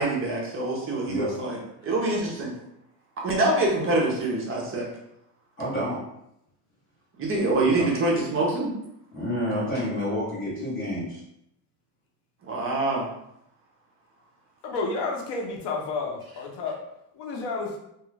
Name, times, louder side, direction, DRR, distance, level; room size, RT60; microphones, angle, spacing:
voice 1, 0.0-1.6 1.8-2.5 3.2-4.9 7.2-8.7 12.5-13.1, right 2 dB, 30° right, -2 dB, 0.5 m, -25 dB
voice 2, 5.6-6.0 7.6-7.9 9.1-11.2, equal, 25° left, -8 dB, 1.0 m, -29 dB
voice 3, 14.6-16.8 17.1-17.8, left 3 dB, 60° left, 1 dB, 0.7 m, -31 dB
2.3 x 2.2 x 3.1 m, 0.79 s
cardioid pair, 150°, 47 cm